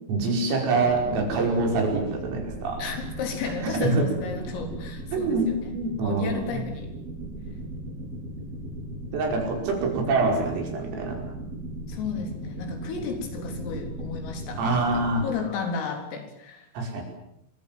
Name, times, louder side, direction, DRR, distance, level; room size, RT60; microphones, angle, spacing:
voice 1, 0.1-2.8 3.5-4.1 5.1-6.6 9.1-11.2 14.6-15.3 16.8-17.0, right 3 dB, 90° right, 3 dB, 8.0 m, -25 dB
sound 1, 0.7-15.3, right 2 dB, 50° right, 7.1 m, -37 dB
voice 2, 2.8-6.9 11.9-16.7, left 5 dB, 85° left, 5 dB, 6.6 m, -33 dB
27.5 x 23.5 x 7.5 m, 0.81 s
omnidirectional pair, 5.8 m